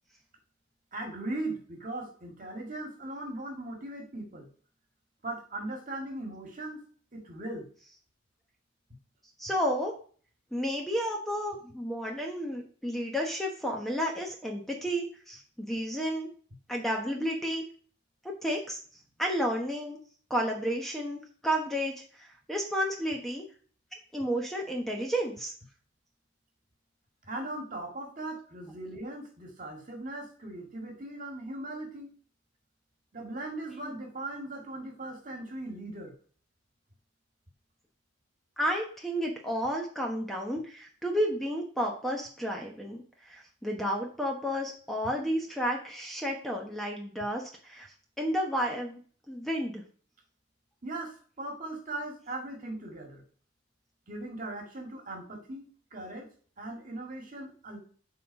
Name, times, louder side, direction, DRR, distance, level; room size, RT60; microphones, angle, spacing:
voice 1, 0.9-4.5 5.2-6.8 7.1-7.7 27.2-32.1 33.1-36.1 50.8-53.2 54.1-56.3 56.6-57.8, right 2 dB, 45° right, 2 dB, 1.9 m, -39 dB
voice 2, 9.4-9.9 10.5-16.3 16.7-17.6 18.4-18.8 19.2-20.0 20.3-23.5 24.1-25.5 33.8-33.9 38.6-47.9 48.2-49.0 49.3-49.8, equal, ahead, 0 dB, 1.0 m, -31 dB
7.4 x 3.9 x 5.3 m, 0.44 s
head